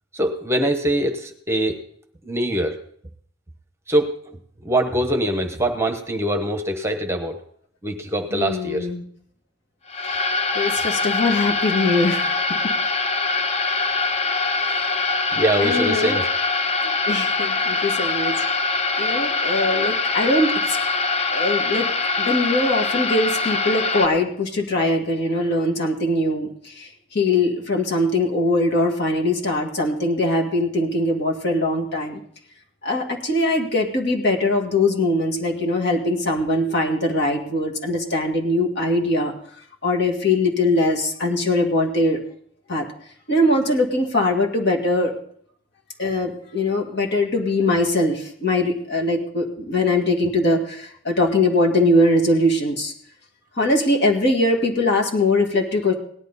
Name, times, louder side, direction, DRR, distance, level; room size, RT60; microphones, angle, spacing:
voice 1, 0.1-1.8 2.2-2.8 3.9-4.1 4.6-7.4 7.8-8.9 15.4-16.3, right 1 dB, 15° right, 5 dB, 1.1 m, -23 dB
voice 2, 8.3-9.0 10.0-12.3 14.6-14.9 15.6-16.2 17.1-18.3 19.0-20.8 21.3-21.9 22.2-32.2 32.8-39.3 39.8-42.2 42.7-42.9 43.3-45.1 46.0-52.9 53.6-55.9, left 1 dB, 55° left, 0 dB, 2.2 m, -21 dB
sound 1, 9.9-24.1, left 3 dB, 30° left, 0.7 m, -23 dB
18.0 x 11.5 x 4.1 m, 0.62 s
head